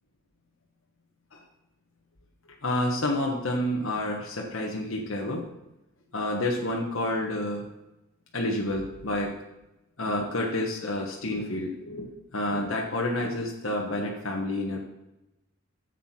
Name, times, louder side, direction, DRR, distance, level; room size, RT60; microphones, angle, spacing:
voice 1, 2.6-5.5 6.1-7.7 8.3-9.4 10.0-14.8, left 1 dB, 85° left, -1 dB, 1.4 m, -29 dB
13.0 x 8.1 x 4.4 m, 0.97 s
head